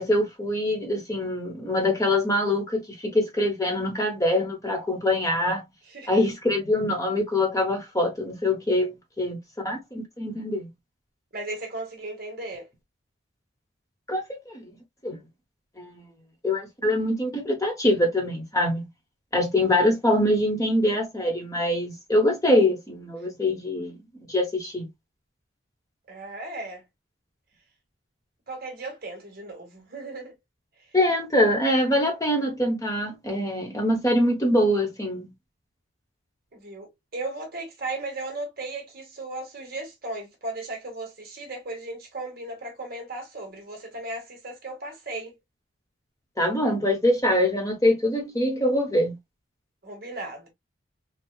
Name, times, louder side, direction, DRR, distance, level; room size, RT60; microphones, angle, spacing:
voice 1, 0.0-5.6 6.1-9.4 9.6-10.7 14.1-14.6 15.0-15.2 15.8-16.0 16.4-18.8 19.3-23.9 24.3-24.9 30.9-35.3 46.4-49.1, left 1 dB, 15° left, 1.1 m, -24 dB
voice 2, 11.3-12.7 26.1-26.8 28.5-30.3 36.5-45.3 49.8-50.5, right 2 dB, 50° right, 1.5 m, -36 dB
4.6 x 2.3 x 2.3 m
head